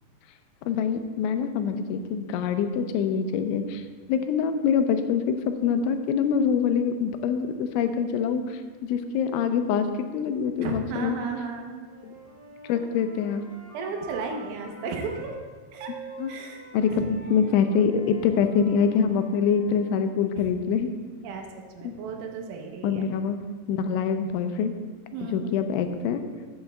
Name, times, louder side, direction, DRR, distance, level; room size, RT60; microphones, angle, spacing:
voice 1, 0.7-9.9 10.1-11.2 12.0-12.1 12.6-13.4 16.2-16.3 16.7-20.9 21.8-21.9 22.8-23.4 23.7-24.7 25.2-26.2, left 6 dB, 90° left, 7 dB, 3.0 m, -25 dB
voice 2, 10.6-11.9 13.7-15.4 15.7-15.9 16.3-16.6 16.9-17.1 21.2-23.1 25.1-25.7, right 4 dB, 85° right, 3 dB, 3.5 m, -34 dB
Wind instrument woodwind instrument, 11.8-15.4 15.7-20.0, right 3 dB, 40° left, 2.6 m, -46 dB
13.5 x 8.9 x 2.3 m, 1.4 s
omnidirectional pair, 5.4 m